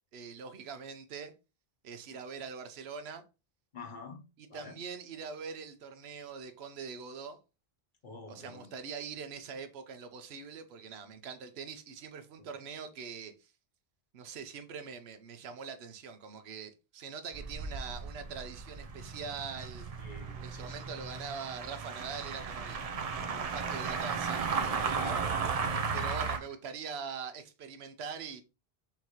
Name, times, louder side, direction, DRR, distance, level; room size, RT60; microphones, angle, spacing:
voice 1, 0.1-1.3 1.8-3.2 4.4-7.4 8.3-13.5 14.1-19.9 20.4-22.8 23.3-25.2 25.9-28.4, right 6 dB, 85° right, 0.9 m, -43 dB
voice 2, 3.7-4.2 4.5-4.8 8.0-8.7 12.4-12.5 20.0-20.7 24.9-25.9 26.2-26.3, left 3 dB, 50° left, 1.0 m, -47 dB
sound 1, 17.3-26.4, right 5 dB, 50° right, 0.5 m, -35 dB
5.6 x 2.7 x 2.9 m
omnidirectional pair, 1.0 m